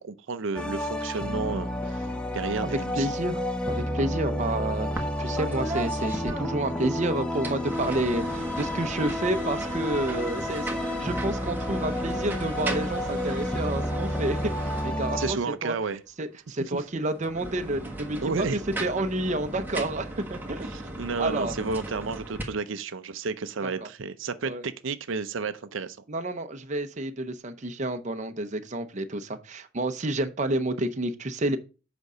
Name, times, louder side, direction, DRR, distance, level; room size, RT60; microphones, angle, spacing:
voice 1, 0.3-3.1 15.1-16.0 16.6-16.8 18.2-18.6 20.7-26.0, right 4 dB, 75° right, 0.6 m, -32 dB
sound 1, 0.5-15.3, left 1 dB, 5° left, 0.7 m, -31 dB
voice 2, 2.6-15.4 15.6-15.8 16.2-18.5 18.8-20.7 21.2-21.5 23.6-23.9 24.4-24.6 26.1-31.6, right 1 dB, 40° right, 0.7 m, -30 dB
sound 2, 5.0-5.1 5.4-6.9 7.3-15.4 17.1-22.4, right 2 dB, 10° right, 1.4 m, -36 dB
8.0 x 5.2 x 4.9 m
head